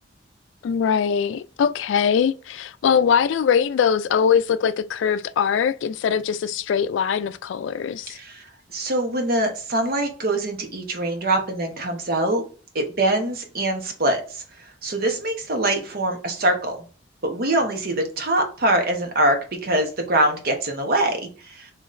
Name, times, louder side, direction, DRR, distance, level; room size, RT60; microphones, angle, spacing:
voice 1, 0.6-8.2, left 7 dB, 80° left, 0.3 m, -22 dB
voice 2, 8.1-12.4 12.7-16.8 17.2-21.7, right 1 dB, 55° right, 1.0 m, -24 dB
3.8 x 3.0 x 3.1 m
head